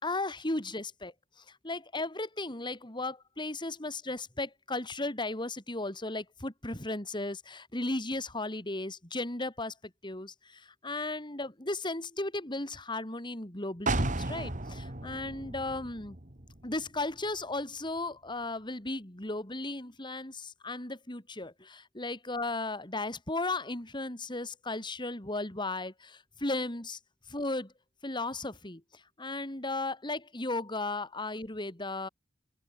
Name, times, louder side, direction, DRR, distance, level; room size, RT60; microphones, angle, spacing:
voice 1, 0.0-16.2 16.6-27.0 27.3-27.7 28.0-32.1, left 2 dB, 25° left, 3.1 m, -36 dB
sound 1, 13.9-17.6 18.0-18.1, right 2 dB, 45° right, 2.5 m, -35 dB
head